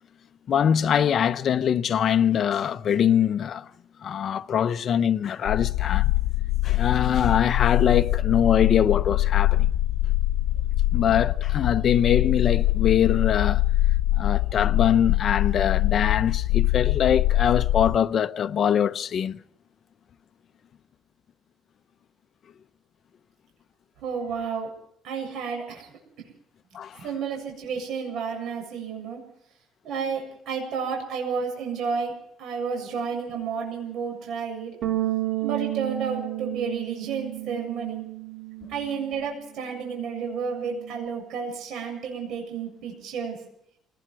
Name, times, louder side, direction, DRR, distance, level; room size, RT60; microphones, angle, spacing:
voice 1, 0.5-3.7 4.0-6.1 6.6-9.7 10.9-13.6 14.1-19.4 26.7-27.0, left 9 dB, 45° left, 0.9 m, -23 dB
sound 1, 5.5-18.0, left 15 dB, 90° left, 0.7 m, -23 dB
voice 2, 24.0-24.7 25.0-25.9 27.0-29.2 29.8-34.8 35.4-38.1 38.7-43.4, right 6 dB, 65° right, 7.4 m, -31 dB
Bass guitar, 34.8-41.1, right 16 dB, 50° right, 2.7 m, -32 dB
27.5 x 19.5 x 4.8 m
cardioid pair, 135°, 0 cm